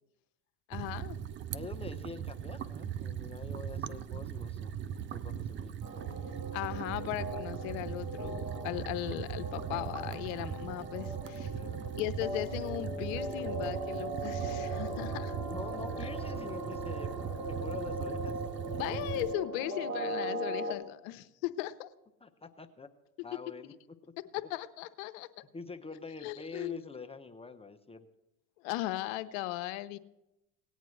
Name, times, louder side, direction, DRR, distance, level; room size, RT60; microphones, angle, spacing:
voice 1, 0.7-1.2 6.5-11.5 12.0-15.4 18.7-21.9 24.5-25.3 26.2-26.8 28.6-30.0, left 16 dB, 75° left, 12 dB, 0.8 m, -37 dB
sound 1, 0.7-19.3, right 9 dB, 30° right, 0.4 m, -39 dB
voice 2, 1.5-4.7 5.1-5.8 6.9-7.1 11.5-12.0 15.5-17.1 17.5-18.4 22.2-22.9 23.2-23.7 25.5-28.1, left 4 dB, 15° left, 6 dB, 0.6 m, -46 dB
sound 2, 5.8-20.7, right 1 dB, 90° right, 2.0 m, -39 dB
18.5 x 9.2 x 3.2 m, 0.91 s
supercardioid pair, 95°, 41 cm